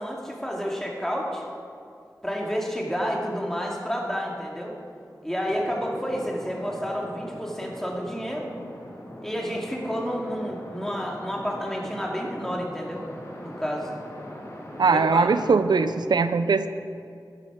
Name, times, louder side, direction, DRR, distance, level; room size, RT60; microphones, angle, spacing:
voice 1, 0.0-1.4 2.2-4.8 5.2-8.5 9.2-13.0 13.4-13.9 14.9-15.3, equal, 5° left, -1 dB, 2.2 m, -30 dB
sound 1, 5.5-16.0, equal, 45° left, 2.1 m, -42 dB
voice 2, 14.8-16.7, right 4 dB, 85° right, 11 dB, 0.4 m, -21 dB
12.5 x 8.4 x 4.9 m, 2.4 s
wide cardioid pair, 50°, 7 cm